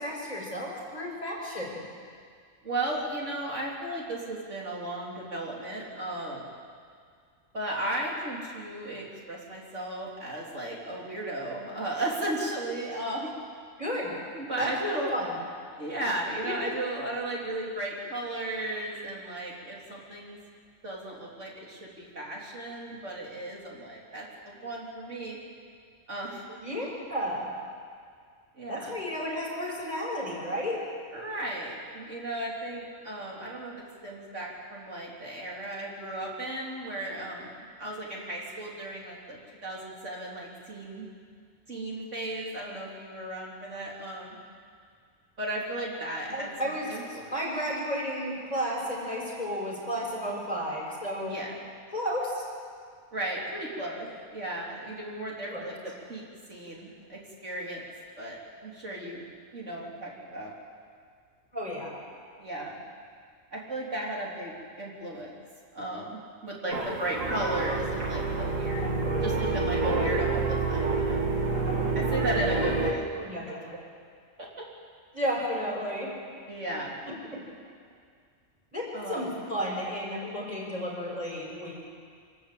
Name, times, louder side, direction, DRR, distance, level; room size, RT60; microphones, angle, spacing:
voice 1, 0.0-1.8 13.8-14.1 14.6-14.7 15.1-15.3 16.4-16.7 26.6-27.5 28.7-30.8 46.3-51.4 51.9-52.5 55.5-55.6 61.5-61.9 73.1-73.8 75.1-76.1 77.0-77.4 78.7-81.7, equal, 30° left, -3 dB, 5.7 m, -33 dB
voice 2, 2.6-6.5 7.5-13.3 14.3-15.1 15.8-20.4 20.8-25.4 26.1-26.6 28.6-28.9 31.1-41.1 41.7-44.4 45.4-47.3 51.3-51.6 53.1-56.2 56.5-57.8 58.2-59.3 59.5-60.5 62.4-62.8 63.5-65.3 65.7-71.2 71.9-73.1 74.4-74.7 76.5-77.0 78.9-79.3, right 1 dB, 65° right, -4 dB, 3.9 m, -35 dB
sound 1, 66.7-72.9, right 3 dB, 85° right, 2.2 m, -28 dB
26.0 x 13.0 x 8.6 m, 2.1 s
omnidirectional pair, 1.3 m